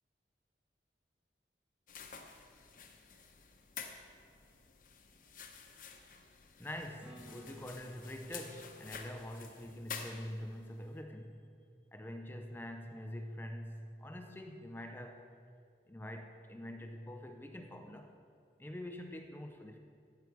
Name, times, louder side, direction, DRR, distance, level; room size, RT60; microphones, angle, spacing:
sound 1, 1.9-10.7, left 6 dB, 50° left, 1.0 m, -50 dB
voice 1, 6.6-11.4 11.9-15.3 15.9-18.1 18.6-19.8, left 1 dB, 10° left, 4 dB, 0.6 m, -45 dB
Acoustic guitar / Strum, 7.0-10.8 15.6-15.7, equal, 5° right, 1.2 m, -59 dB
14.5 x 9.6 x 4.7 m, 2.4 s
head